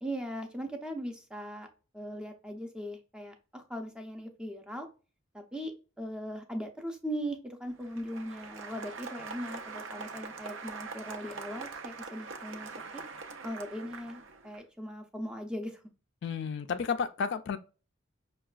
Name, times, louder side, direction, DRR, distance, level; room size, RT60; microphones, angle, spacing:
voice 1, 0.0-1.7 1.9-4.9 5.3-5.7 6.0-13.0 13.4-15.8, equal, 5° right, 0.5 m, -39 dB
Applause, 7.7-14.6, right 4 dB, 70° right, 0.5 m, -43 dB
voice 2, 16.2-17.6, left 6 dB, 60° left, 0.3 m, -32 dB
5.6 x 2.2 x 2.3 m
head